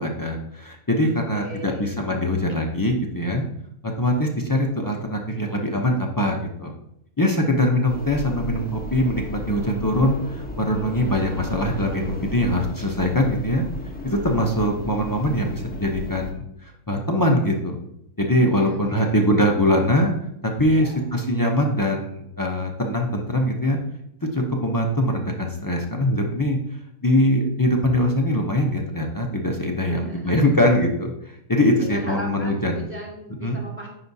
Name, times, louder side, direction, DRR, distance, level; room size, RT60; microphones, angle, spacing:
voice 1, 0.0-3.4 3.8-6.7 7.2-13.6 14.0-17.8 18.2-20.1 20.6-23.8 24.3-26.6 27.0-32.8 33.4-33.6, left 1 dB, 30° left, 0 dB, 0.3 m, -22 dB
voice 2, 1.1-2.0 18.4-19.2 20.7-21.0 29.9-30.4 31.8-33.9, right 1 dB, 10° right, -4 dB, 2.2 m, -37 dB
sound 1, 7.9-16.3, left 1 dB, 10° left, 0.7 m, -34 dB
9.8 x 4.8 x 2.7 m, 0.77 s
omnidirectional pair, 1.6 m